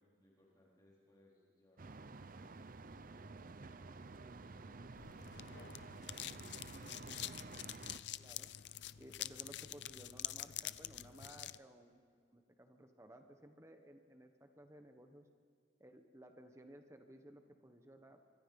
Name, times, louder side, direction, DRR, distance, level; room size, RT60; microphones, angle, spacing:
voice 1, 0.0-2.6 2.9-7.3, left 1 dB, 20° left, -5 dB, 4.3 m, -70 dB
sound 1, 1.8-8.0, right 3 dB, 50° right, 0.7 m, -51 dB
sound 2, 5.0-11.6, left 13 dB, 70° left, 0.5 m, -46 dB
voice 2, 8.2-8.5 9.0-12.0 12.3-15.3 15.8-18.2, right 1 dB, 15° right, 6 dB, 1.2 m, -58 dB
24.5 x 24.5 x 5.4 m, 2.2 s
head